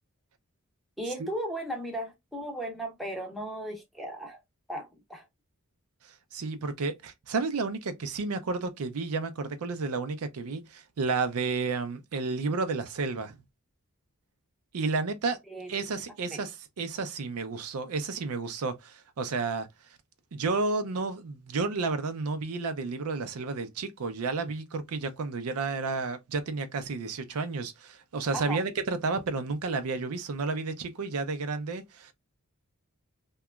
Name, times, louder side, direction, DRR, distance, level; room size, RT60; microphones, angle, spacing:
voice 1, 1.0-4.4 4.7-5.2 15.5-15.9 16.3-16.4 28.3-28.6, right 1 dB, ahead, 0.6 m, -36 dB
voice 2, 6.0-13.3 14.7-15.4 15.7-19.7 20.3-32.1, right 4 dB, 85° right, 0.5 m, -31 dB
2.8 x 2.2 x 2.2 m
head